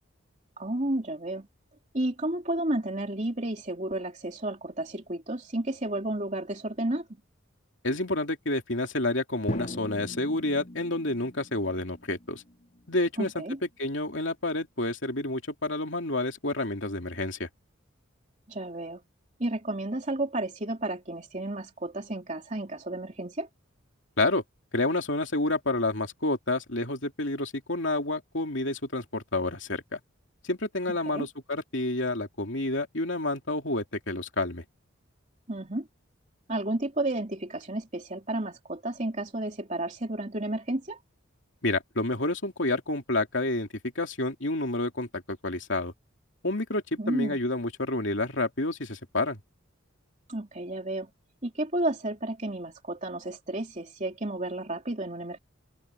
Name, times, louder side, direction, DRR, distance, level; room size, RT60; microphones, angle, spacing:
voice 1, 0.6-1.5 1.9-7.1 13.2-13.6 18.5-19.0 19.4-23.5 31.0-31.3 35.5-35.9 36.5-41.0 47.0-47.4 50.3-51.1 51.4-55.4, right 1 dB, 35° right, 3.4 m, -32 dB
voice 2, 7.8-12.4 12.9-13.4 13.8-17.5 24.2-24.4 24.7-30.0 30.4-34.6 41.6-43.7 43.9-45.9 46.4-49.4, left 2 dB, 60° left, 3.1 m, -29 dB
Drum, 9.5-13.5, equal, 35° left, 4.9 m, -40 dB
head